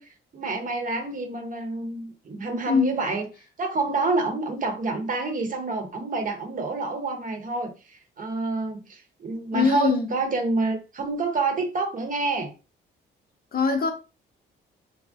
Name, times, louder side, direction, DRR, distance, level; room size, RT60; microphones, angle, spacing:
voice 1, 0.0-3.3 3.6-12.5, right 3 dB, 40° right, 0.9 m, -28 dB
voice 2, 9.5-10.1 13.5-13.9, left 5 dB, 50° left, 0.7 m, -22 dB
2.6 x 2.1 x 3.4 m
cardioid pair, 90°, 20 cm